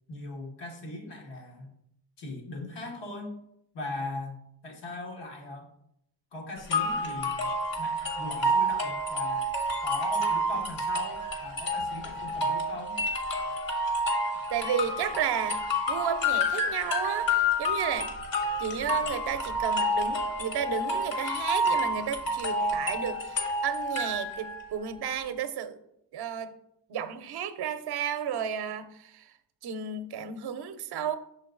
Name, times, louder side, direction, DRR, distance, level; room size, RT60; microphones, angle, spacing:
voice 1, 0.1-1.7 2.2-3.4 3.7-5.7 6.3-7.5 7.8-9.5 9.8-13.0, left 2 dB, 75° left, 0 dB, 1.7 m, -39 dB
sound 1, 6.7-24.6, left 1 dB, 50° left, 1.3 m, -29 dB
voice 2, 14.5-15.6 15.9-18.1 18.6-25.8 26.1-26.5 26.9-29.3 29.6-31.2, right 8 dB, 65° right, 11 dB, 0.6 m, -32 dB
6.2 x 4.3 x 3.8 m, 0.77 s
cardioid pair, 125°, 43 cm